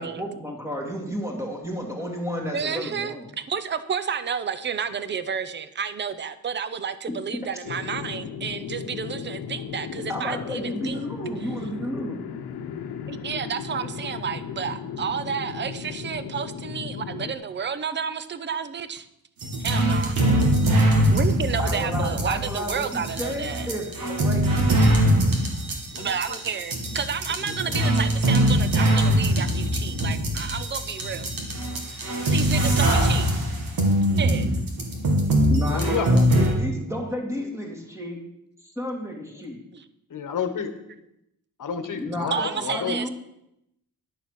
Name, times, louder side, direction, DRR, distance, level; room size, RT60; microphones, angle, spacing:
voice 1, 0.0-3.3 10.1-12.2 21.6-24.8 35.5-38.2 38.6-39.6 42.0-43.1, equal, 5° right, 0 dB, 2.2 m, -32 dB
voice 2, 2.5-11.0 12.1-12.2 13.1-19.1 19.6-20.2 21.1-23.7 26.0-31.3 32.3-33.3 34.2-34.5 42.3-43.1, right 7 dB, 30° right, 13 dB, 0.6 m, -31 dB
sound 1, 7.6-17.3, left 7 dB, 85° left, 1.0 m, -35 dB
sound 2, 19.4-36.5, equal, 65° right, 2.2 m, -22 dB
voice 3, 20.2-20.7 25.9-26.4 27.4-27.5 35.7-36.1 40.1-40.7 41.6-43.0, left 7 dB, 55° left, 9 dB, 1.2 m, -31 dB
11.0 x 6.9 x 6.5 m, 0.82 s
wide cardioid pair, 170°, 37 cm